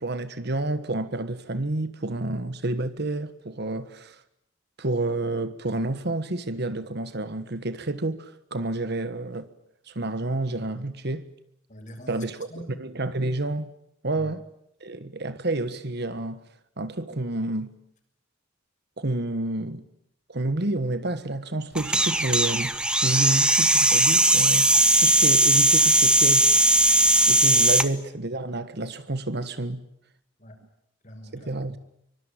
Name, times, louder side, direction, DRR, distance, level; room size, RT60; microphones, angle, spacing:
voice 1, 0.0-4.2 4.8-9.5 9.9-11.3 12.1-12.3 12.8-13.7 14.0-14.4 14.8-16.4 16.8-17.8 19.0-19.9 20.3-24.7 25.0-26.5 27.3-29.8 31.3-31.8, right 2 dB, 55° right, 1.5 m, -29 dB
voice 2, 11.7-12.8 14.1-14.3 30.4-30.6 31.0-31.6, equal, 40° left, 6.9 m, -44 dB
sound 1, 21.7-27.9, right 1 dB, 5° right, 1.0 m, -19 dB
24.5 x 24.5 x 9.0 m
head